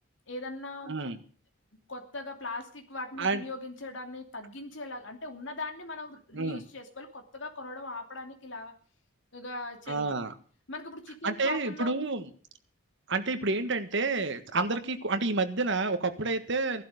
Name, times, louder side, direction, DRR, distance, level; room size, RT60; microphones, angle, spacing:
voice 1, 0.3-1.0 1.9-8.7 9.3-10.2 10.7-11.9, left 2 dB, 60° left, 5 dB, 2.7 m, -40 dB
voice 2, 0.9-1.2 3.2-3.4 6.3-6.6 9.9-10.3 11.2-12.3 13.1-16.8, right 3 dB, 55° right, 9 dB, 1.6 m, -29 dB
16.5 x 11.5 x 6.7 m, 0.43 s
head